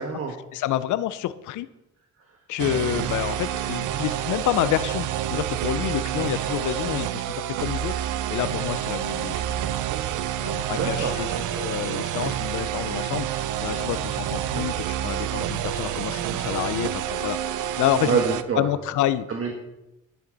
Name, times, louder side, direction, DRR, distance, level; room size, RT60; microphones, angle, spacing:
voice 1, 0.0-0.3 10.7-11.2 18.0-18.7 19.3-19.6, right 5 dB, 50° right, 2 dB, 1.4 m, -26 dB
voice 2, 0.5-1.7 2.5-9.7 10.4-18.2 18.6-19.3, left 13 dB, 80° left, 15 dB, 0.5 m, -28 dB
sound 1, 2.6-18.4, right 11 dB, 85° right, 0.6 m, -28 dB
11.0 x 10.0 x 3.9 m, 0.97 s
cardioid pair, 90°, 30 cm